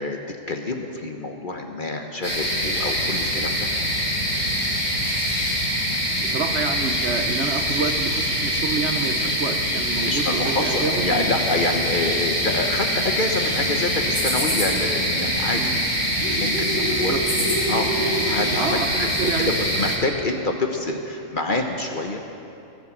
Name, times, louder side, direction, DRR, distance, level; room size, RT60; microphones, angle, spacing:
voice 1, 0.0-3.7 10.0-15.8 16.4-17.2 17.7-22.2, left 2 dB, 40° left, 3 dB, 1.0 m, -27 dB
sound 1, 2.2-20.0, equal, 15° left, 2.3 m, -24 dB
voice 2, 6.1-11.3 15.5-15.8 16.9-17.2 18.6-19.5, right 5 dB, 55° right, 6 dB, 1.0 m, -28 dB
20.0 x 8.0 x 7.3 m, 2.8 s
omnidirectional pair, 1.5 m